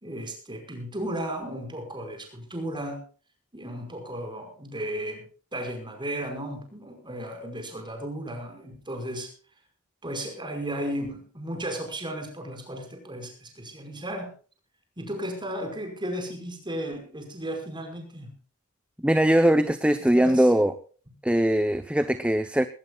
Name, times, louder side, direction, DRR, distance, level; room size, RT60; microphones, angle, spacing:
voice 1, 0.0-3.0 3.5-5.2 5.5-9.3 10.0-14.3 15.0-18.3 20.1-20.5, right 1 dB, 20° right, 5 dB, 5.2 m, -34 dB
voice 2, 19.0-20.7 21.2-22.7, right 1 dB, 5° right, 10 dB, 0.8 m, -21 dB
20.0 x 18.0 x 2.4 m, 0.40 s
head